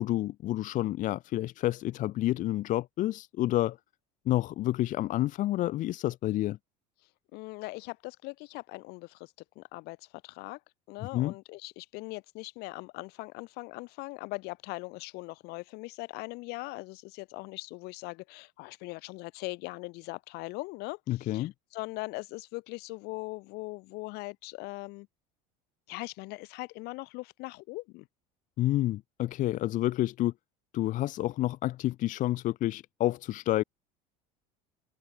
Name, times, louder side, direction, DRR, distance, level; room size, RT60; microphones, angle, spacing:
voice 1, 0.0-3.8 4.3-6.6 11.1-11.3 21.1-21.5 28.6-30.3 30.7-33.6, left 15 dB, 45° left, 0.7 m, -29 dB
voice 2, 7.3-10.6 10.9-25.1 25.9-28.1, left 24 dB, 65° left, 2.5 m, -40 dB
supercardioid pair, 120°, 18 cm